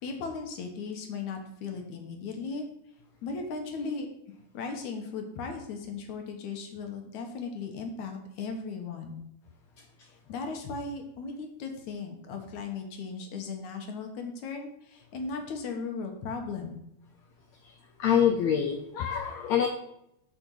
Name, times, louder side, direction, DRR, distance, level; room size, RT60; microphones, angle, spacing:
voice 1, 0.0-2.7 3.2-4.1 4.5-9.2 10.3-16.8, left 4 dB, 65° left, 4 dB, 2.3 m, -37 dB
voice 2, 18.0-19.7, left 8 dB, 85° left, 2 dB, 1.5 m, -25 dB
8.8 x 5.3 x 6.3 m, 0.78 s
omnidirectional pair, 4.1 m